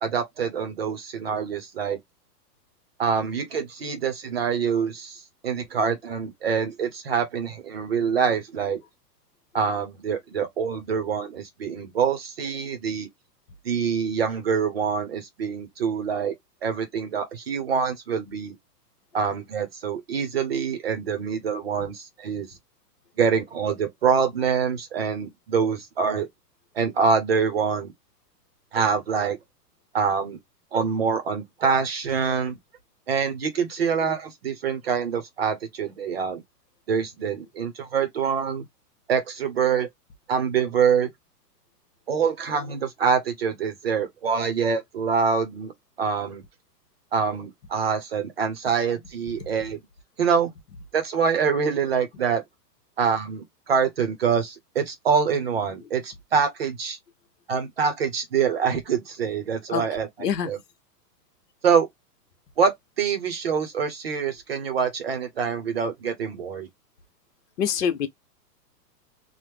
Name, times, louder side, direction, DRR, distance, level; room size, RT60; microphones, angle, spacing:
voice 1, 0.0-2.0 3.0-8.8 9.5-13.1 13.6-16.3 16.6-18.5 19.1-22.5 23.2-26.3 26.7-27.9 28.7-29.4 29.9-30.4 30.7-32.6 33.1-36.4 36.9-38.6 39.1-39.9 40.3-41.1 42.1-45.7 46.0-46.4 47.1-49.8 50.2-50.5 50.9-52.4 53.0-57.0 57.5-60.6 61.6-61.9 62.6-62.7 63.0-66.7, right 6 dB, 40° right, 0.7 m, -25 dB
voice 2, 60.2-60.5 67.6-68.1, left 8 dB, 70° left, 1.0 m, -25 dB
3.1 x 2.1 x 3.3 m
hypercardioid pair, 175°, 49 cm